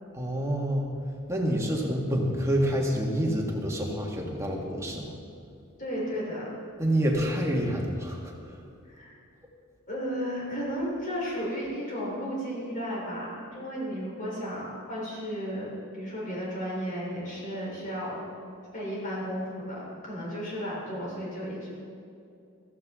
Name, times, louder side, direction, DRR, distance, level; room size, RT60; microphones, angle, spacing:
voice 1, 0.1-0.9 1.3-5.1 6.8-8.6, equal, 15° right, -1 dB, 1.8 m, -27 dB
voice 2, 5.8-6.5 8.9-9.1 9.9-18.2 18.7-21.7, equal, 40° left, -5 dB, 3.8 m, -34 dB
14.5 x 14.0 x 3.7 m, 2.5 s
head